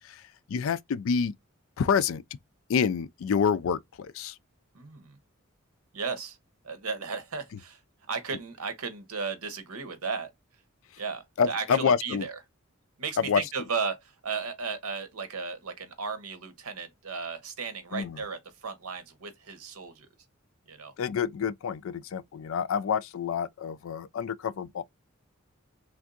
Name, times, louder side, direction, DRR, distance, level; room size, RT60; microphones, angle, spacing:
voice 1, 0.0-1.3 1.8-2.2 2.7-4.4 11.4-12.3 13.2-13.4 17.9-18.2 21.0-24.8, left 6 dB, 65° left, 0.3 m, -28 dB
voice 2, 4.7-5.2 5.9-6.4 6.6-7.8 8.1-10.3 11.0-12.4 13.0-20.1 20.7-20.9, right 5 dB, 85° right, 0.9 m, -35 dB
3.4 x 2.6 x 2.4 m
head